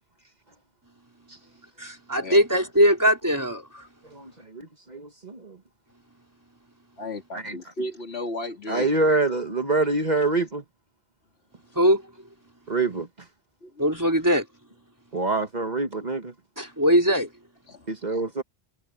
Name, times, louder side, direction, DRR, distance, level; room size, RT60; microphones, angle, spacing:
voice 1, 1.8-3.9 11.8-12.0 13.8-14.5 16.6-17.3, equal, 15° right, 3.6 m, -21 dB
voice 2, 4.1-5.6 7.4-7.5 8.7-10.6 12.7-13.1 15.1-16.3 17.9-18.4, right 3 dB, 45° right, 1.6 m, -25 dB
voice 3, 7.0-8.9 13.6-13.8 17.7-17.9, left 1 dB, 75° left, 2.9 m, -34 dB
omnidirectional pair, 1.1 m